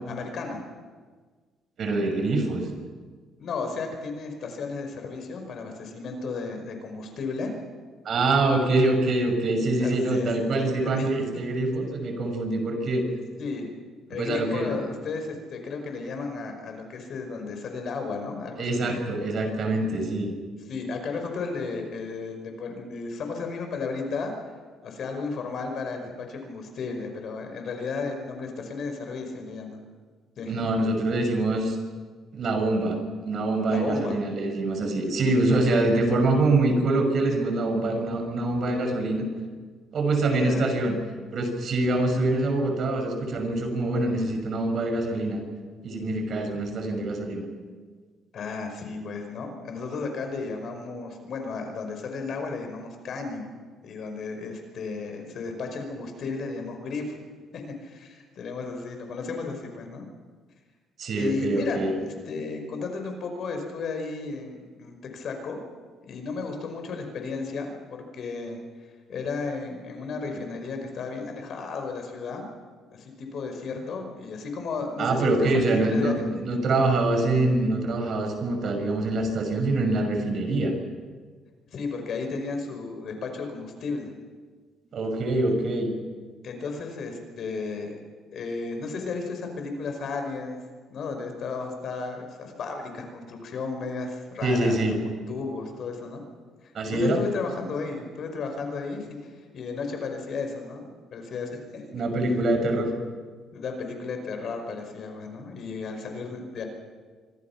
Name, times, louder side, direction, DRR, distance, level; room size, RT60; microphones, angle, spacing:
voice 1, 0.1-0.6 3.4-7.5 9.8-10.3 10.8-11.4 13.4-13.7 14.1-19.0 20.7-24.3 24.8-29.8 30.4-30.7 33.7-34.2 40.2-40.7 48.3-53.5 53.8-57.2 57.5-60.1 61.2-65.6 66.0-68.6 69.1-72.4 72.9-75.4 75.7-76.3 81.7-84.1 86.4-87.9 88.3-90.6 90.9-96.2 96.6-101.8 103.5-106.6, left 4 dB, 55° left, 5 dB, 5.4 m, -34 dB
voice 2, 1.8-2.7 8.0-13.0 14.1-14.8 18.6-20.3 30.5-31.8 32.3-39.2 39.9-40.9 41.3-45.4 45.8-47.4 61.0-61.9 75.0-80.7 84.9-85.9 94.4-95.0 96.7-97.2 101.9-102.9, right 2 dB, 50° right, 4 dB, 6.1 m, -25 dB
25.5 x 25.0 x 6.1 m, 1.5 s
cardioid pair, 115°, 0 cm